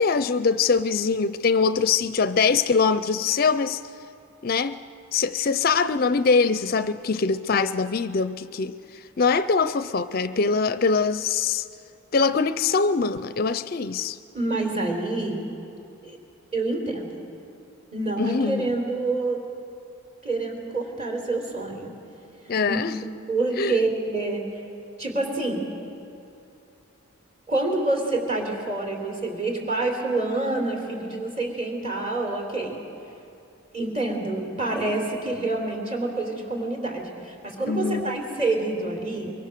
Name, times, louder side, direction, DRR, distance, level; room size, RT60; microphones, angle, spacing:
voice 1, 0.0-3.8 4.4-4.8 5.1-11.7 12.1-14.2 18.2-18.7 22.5-22.9 23.6-23.8 37.7-38.2, left 5 dB, 45° left, 0.4 m, -23 dB
voice 2, 14.3-15.4 16.0-16.2 16.5-17.2 17.9-19.4 20.2-21.9 22.4-22.8 23.3-24.4 25.0-25.6 27.5-32.8 33.7-39.3, right 2 dB, 30° right, 3.6 m, -27 dB
23.5 x 23.5 x 6.7 m
head